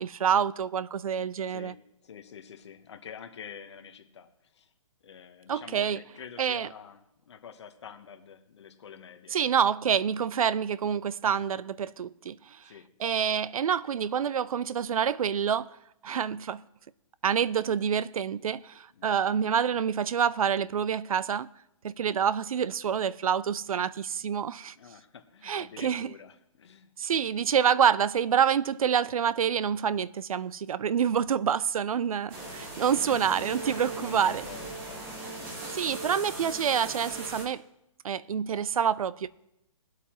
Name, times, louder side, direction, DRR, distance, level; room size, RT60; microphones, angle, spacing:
voice 1, 0.0-1.7 5.5-6.0 6.4-6.7 9.3-12.4 13.0-15.7 16.0-16.6 17.2-21.5 21.8-24.7 25.4-26.1 27.0-34.4 35.8-37.6 38.0-39.3, right 8 dB, 80° right, 0.5 m, -27 dB
voice 2, 1.5-4.7 5.0-9.4 12.6-13.2 18.9-19.1 24.7-26.9 32.7-32.8 33.2-33.3 34.0-35.5 35.9-36.1, left 7 dB, 50° left, 1.2 m, -48 dB
sound 1, 32.3-37.4, right 2 dB, 15° right, 1.2 m, -39 dB
21.0 x 8.1 x 3.0 m
hypercardioid pair, 170°, 18 cm